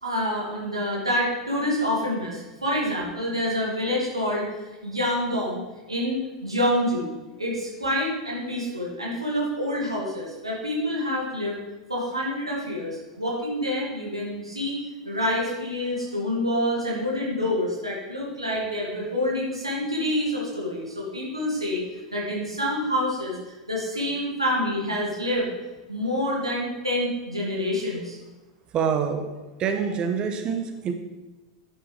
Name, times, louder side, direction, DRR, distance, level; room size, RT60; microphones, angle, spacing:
voice 1, 0.0-4.5 4.8-5.6 5.9-7.1 7.4-11.5 11.9-21.8 22.1-25.5 25.9-28.2, left 1 dB, 85° right, -4 dB, 2.1 m, -27 dB
voice 2, 28.7-29.3 29.6-30.9, right 7 dB, 30° right, 6 dB, 1.0 m, -26 dB
9.9 x 7.3 x 3.3 m, 1.1 s
figure-of-eight pair, 85°, 3 cm